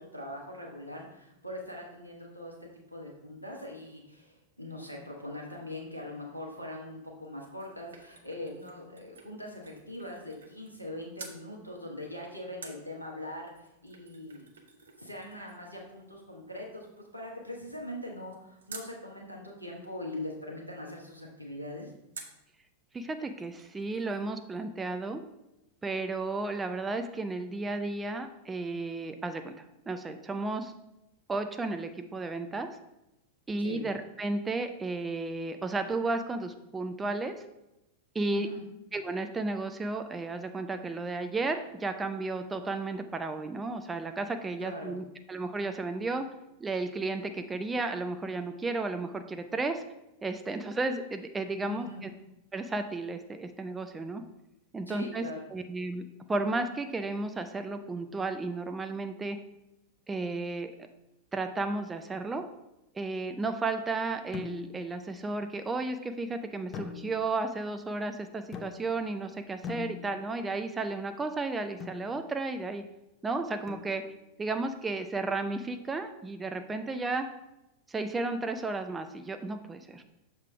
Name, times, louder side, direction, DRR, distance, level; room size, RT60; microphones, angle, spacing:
voice 1, 0.0-14.5 15.0-16.9 17.1-21.9 33.6-33.8 38.3-38.6 44.6-44.9 51.7-52.0 54.9-55.4, left 1 dB, 90° right, -1 dB, 1.2 m, -41 dB
sound 1, 7.2-10.9 11.2-11.4 12.6-19.0 22.1-22.5 23.0-23.1 23.3-24.3 24.5-24.6, right 4 dB, 65° right, 0.7 m, -51 dB
voice 2, 22.9-25.2 25.8-30.7 31.3-32.7 33.5-37.4 38.1-38.5 38.9-46.2 46.6-49.8 50.2-52.1 52.5-54.2 54.7-55.2 55.5-59.4 60.1-60.7 61.3-62.4 62.9-72.8 73.2-74.0 74.4-77.3 77.9-80.0, right 3 dB, 15° right, 7 dB, 0.4 m, -33 dB
sound 2, 64.3-65.0 66.7-67.5 68.5-69.1 69.6-70.4 71.8-72.1 73.7-74.3, left 7 dB, 30° left, 0.6 m, -42 dB
6.5 x 3.5 x 4.7 m, 0.93 s
figure-of-eight pair, 90°, 0 cm